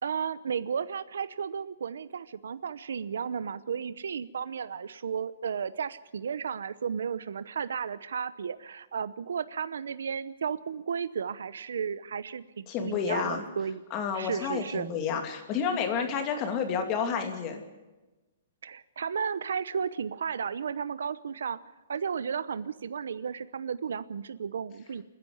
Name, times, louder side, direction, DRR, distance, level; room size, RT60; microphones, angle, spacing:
voice 1, 0.0-13.8 14.1-14.9 18.6-21.6 21.9-25.0, right 7 dB, 90° right, 15 dB, 0.8 m, -33 dB
voice 2, 12.7-13.4 13.9-17.6, left 6 dB, 25° left, 5 dB, 2.7 m, -30 dB
28.5 x 10.5 x 9.6 m, 1.1 s
hypercardioid pair, 165°, 0 cm